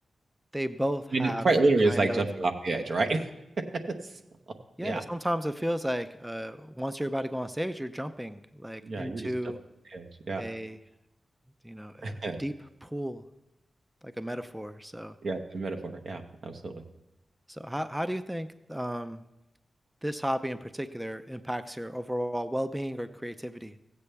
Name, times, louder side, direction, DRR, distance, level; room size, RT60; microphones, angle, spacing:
voice 1, 0.5-1.4 1.9-2.2 4.8-9.6 10.4-10.8 11.6-12.5 12.8-13.2 14.0-15.2 17.5-19.2 20.0-23.7, equal, 10° right, 10 dB, 0.5 m, -33 dB
voice 2, 1.1-3.2 4.0-4.1 4.8-5.0 8.8-9.3 9.9-10.4 12.0-12.4 15.2-16.7, right 3 dB, 65° right, 4 dB, 0.9 m, -28 dB
15.0 x 8.3 x 3.3 m, 0.90 s
cardioid pair, 45°, 0 cm